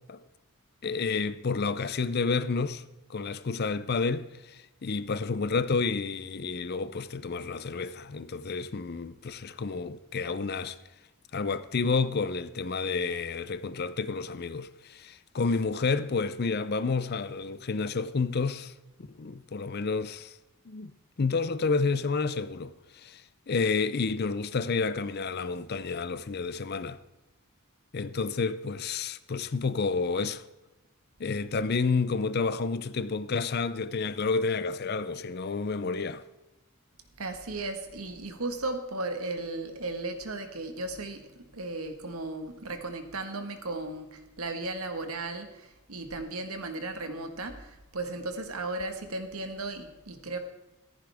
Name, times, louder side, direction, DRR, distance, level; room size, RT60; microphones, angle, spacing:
voice 1, 0.8-2.8 3.1-10.8 11.3-18.7 19.2-20.4 20.7-20.9 21.2-23.2 23.5-27.0 27.9-30.4 31.2-36.2, left 4 dB, 45° left, 0.5 m, -30 dB
voice 2, 37.2-50.4, right 2 dB, 80° right, 1.6 m, -36 dB
15.0 x 14.0 x 3.5 m
head